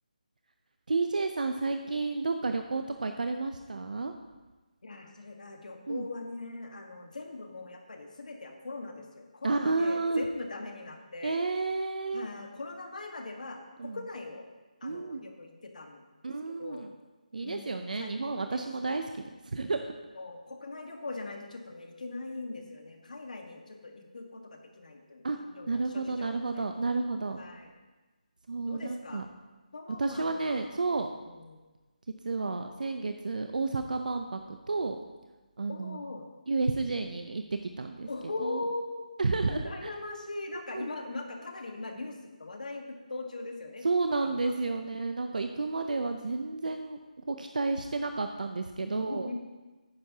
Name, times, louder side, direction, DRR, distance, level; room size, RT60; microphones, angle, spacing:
voice 1, 0.9-4.1 5.9-6.1 9.4-10.2 11.2-12.3 13.8-14.0 14.8-15.3 16.2-16.9 17.3-19.2 19.5-19.9 25.2-25.4 25.7-27.4 28.5-29.3 30.0-31.1 32.2-35.0 35.6-36.1 36.5-38.1 38.4-38.6 39.2-39.9 40.7-40.9 43.8-47.0 47.3-49.3, right 3 dB, 70° right, 7 dB, 0.6 m, -31 dB
voice 2, 4.8-11.4 12.1-14.5 14.8-16.0 16.5-16.8 17.4-19.1 20.1-26.7 27.3-27.7 28.7-29.2 29.7-30.7 31.2-31.6 35.7-36.3 38.1-39.2 39.5-42.8 43.1-43.9 44.2-44.4 44.6-44.7 48.8-49.4, left 2 dB, 65° left, 3 dB, 1.5 m, -41 dB
10.5 x 9.6 x 2.8 m, 1.2 s
hypercardioid pair, 175°, 4 cm